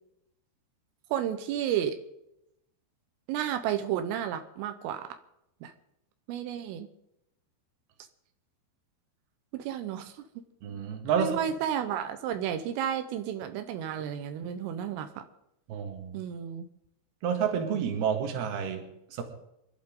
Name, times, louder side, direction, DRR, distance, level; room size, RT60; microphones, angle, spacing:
voice 1, 1.1-2.0 3.3-5.2 5.6-5.7 6.3-6.9 9.5-10.1 11.2-15.2 16.1-16.7, right 10 dB, 85° right, 8 dB, 3.6 m, -32 dB
voice 2, 10.6-11.4 15.7-16.2 17.2-19.2, right 7 dB, 60° right, 4 dB, 3.6 m, -30 dB
26.0 x 12.0 x 3.8 m, 0.82 s
omnidirectional pair, 5.7 m